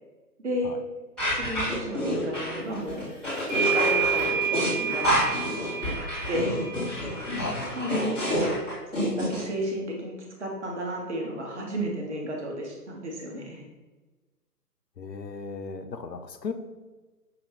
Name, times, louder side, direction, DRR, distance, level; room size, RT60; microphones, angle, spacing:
voice 1, 0.4-0.8 1.3-3.0 3.5-6.6 7.3-8.2 8.9-10.1 10.4-13.6, right 1 dB, 45° right, 0 dB, 1.0 m, -33 dB
sound 1, 1.2-9.4, equal, ahead, 1.2 m, -28 dB
sound 2, 2.9-3.0 3.5-8.3, right 5 dB, 15° right, 1.4 m, -30 dB
voice 2, 15.0-16.5, left 5 dB, 85° left, 8 dB, 0.6 m, -36 dB
5.9 x 2.7 x 3.3 m, 1.2 s
figure-of-eight pair, 140°, 49 cm